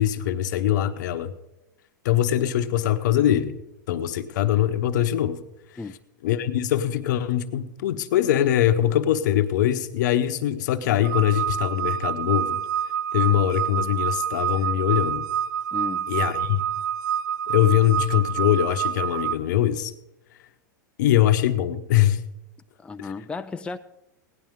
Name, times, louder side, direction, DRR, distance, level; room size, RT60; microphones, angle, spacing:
voice 1, 0.0-1.3 2.0-3.6 3.9-5.4 6.2-12.6 13.1-15.2 16.1-16.6 17.5-19.9 21.0-22.2 23.0-23.1, left 12 dB, 70° left, 11 dB, 0.9 m, -22 dB
sound 1, 11.0-19.3, right 9 dB, 70° right, 0.4 m, -27 dB
voice 2, 15.7-16.1 22.8-23.8, left 4 dB, 10° left, 8 dB, 0.5 m, -34 dB
17.0 x 10.5 x 3.7 m, 0.88 s
hypercardioid pair, 115°, 10 cm